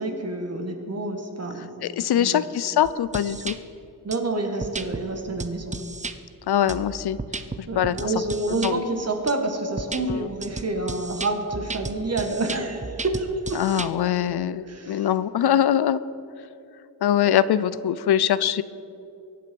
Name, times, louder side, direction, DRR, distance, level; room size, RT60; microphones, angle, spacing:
voice 1, 0.0-2.4 4.0-5.8 7.7-13.9 14.7-15.1 17.2-17.3, right 2 dB, 40° right, 4 dB, 1.8 m, -28 dB
voice 2, 1.8-3.6 6.5-7.2 7.6-8.0 8.6-8.8 10.1-10.3 13.6-16.0 17.0-18.6, left 10 dB, 90° left, 16 dB, 0.6 m, -22 dB
sound 1, 2.8-3.6 4.1-4.2 4.6-5.0 5.4-6.1 6.7-8.7 9.3-9.4 9.8-13.9, right 3 dB, 20° right, 0.6 m, -34 dB
22.5 x 8.6 x 5.4 m, 2.6 s
wide cardioid pair, 140°, 38 cm